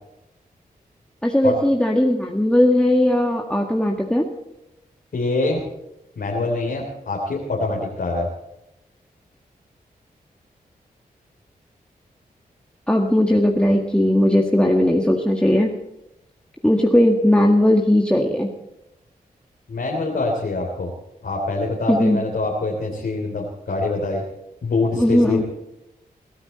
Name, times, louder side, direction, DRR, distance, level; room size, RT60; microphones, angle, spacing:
voice 1, 1.2-4.2 12.9-15.7 16.6-18.5 21.9-22.2 25.0-25.4, left 1 dB, 5° left, 0 dB, 1.8 m, -18 dB
voice 2, 5.1-5.6 6.2-8.3 19.7-20.9 21.2-24.2 24.6-25.4, left 2 dB, 75° left, -1 dB, 3.3 m, -24 dB
22.0 x 13.5 x 4.3 m, 0.90 s
cardioid pair, 50°, 16 cm